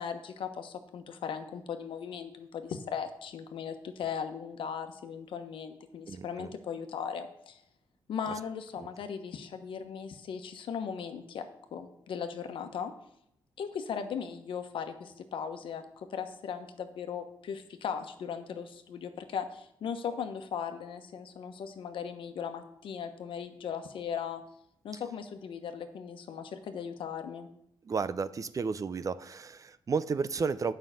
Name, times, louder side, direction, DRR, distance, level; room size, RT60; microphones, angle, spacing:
voice 1, 0.0-7.6 8.1-12.9 13.6-24.4 24.8-27.5, left 7 dB, 75° left, 8 dB, 1.1 m, -38 dB
voice 2, 6.1-6.5 8.8-8.9 27.8-30.7, right 5 dB, 40° right, 15 dB, 0.6 m, -32 dB
9.1 x 5.7 x 7.6 m, 0.74 s
cardioid pair, 85°, 9 cm